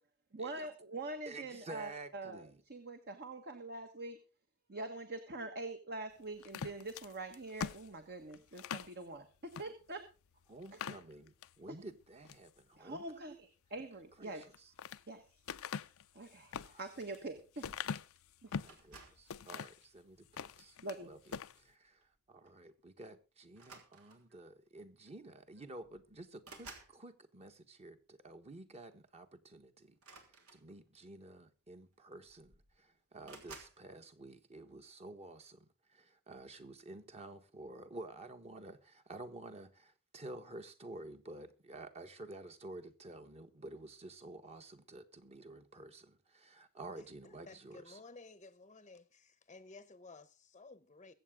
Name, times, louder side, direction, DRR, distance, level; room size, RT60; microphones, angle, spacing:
voice 1, 0.3-4.2 4.7-10.0 10.7-10.9 11.7-11.8 12.8-14.5 15.1-15.2 16.1-17.8 18.4-18.5 20.8-21.1, right 2 dB, 50° right, 1.5 m, -44 dB
voice 2, 1.2-2.6 10.5-13.4 14.2-14.7 16.5-16.8 18.6-22.0 22.3-30.0 30.5-48.0, right 2 dB, 30° right, 1.4 m, -51 dB
sound 1, 6.4-8.9 9.5-9.7 10.1-10.2 10.6-11.6 12.0-12.5 14.3-15.0 15.5-18.8 19.3-19.8 20.2-21.0 21.3-21.6, left 6 dB, 65° left, 0.6 m, -43 dB
sound 2, 18.7-19.3 20.2-20.5 22.0-22.2 22.5-22.6 23.5-24.4 25.4-25.5 25.8-27.0 29.9-31.0 31.9-32.0 32.3-32.8 33.2-33.8, right 4 dB, 80° right, 3.2 m, -55 dB
voice 3, 47.0-51.1, left 3 dB, 30° left, 0.8 m, -55 dB
22.5 x 8.1 x 3.7 m
head